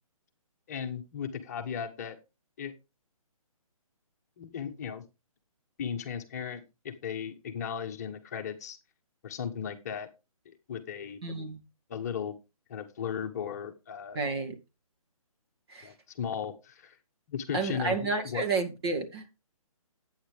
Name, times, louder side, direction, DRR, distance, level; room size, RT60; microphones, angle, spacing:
voice 1, 0.7-2.2 2.6-2.7 4.4-5.0 5.8-8.8 9.2-10.1 10.4-11.2 11.9-12.3 12.7-14.2 15.8-17.0 17.3-18.5, left 7 dB, 25° left, 1.1 m, -36 dB
voice 2, 11.2-11.6 14.1-14.6 15.7-15.9 17.5-19.3, right 4 dB, 45° right, 2.5 m, -31 dB
11.5 x 9.0 x 3.5 m
hypercardioid pair, 165°, 19 cm